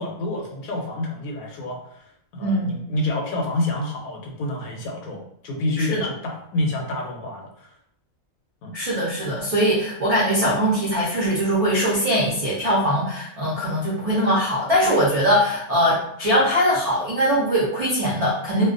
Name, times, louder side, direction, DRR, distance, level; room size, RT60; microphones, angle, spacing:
voice 1, 0.0-2.1 2.3-7.7 8.6-8.8, left 2 dB, 75° left, 0 dB, 1.0 m, -28 dB
voice 2, 2.4-2.7 5.8-6.1 8.7-18.7, equal, 55° right, -8 dB, 0.4 m, -21 dB
2.3 x 2.2 x 2.4 m, 0.70 s
omnidirectional pair, 1.5 m